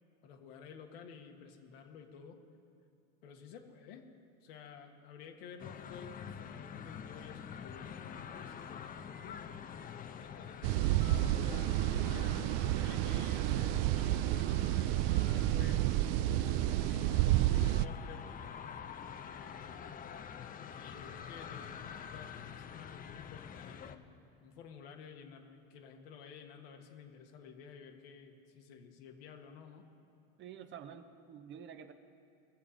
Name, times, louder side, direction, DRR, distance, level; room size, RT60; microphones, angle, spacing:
voice 1, 0.2-2.4 3.2-4.0 4.4-9.4 10.2-16.1 16.8-18.3 19.2-19.9 20.7-29.8, left 7 dB, 75° left, 3 dB, 1.6 m, -52 dB
sound 1, 5.6-24.0, left 7 dB, 30° left, 0.7 m, -47 dB
sound 2, 10.6-17.9, right 15 dB, 55° right, 0.4 m, -30 dB
voice 2, 30.4-31.9, right 8 dB, 40° right, 7 dB, 0.9 m, -49 dB
20.0 x 7.0 x 5.1 m, 2.4 s
supercardioid pair, 105°, 30 cm